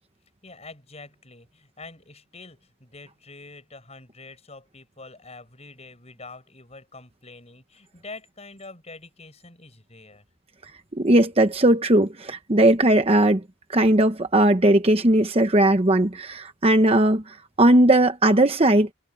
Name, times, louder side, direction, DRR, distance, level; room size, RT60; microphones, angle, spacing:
voice 1, 0.4-10.2, left 3 dB, 30° left, 6.7 m, -45 dB
voice 2, 10.9-13.4 13.7-17.2 17.6-18.9, right 1 dB, 25° right, 0.9 m, -18 dB
head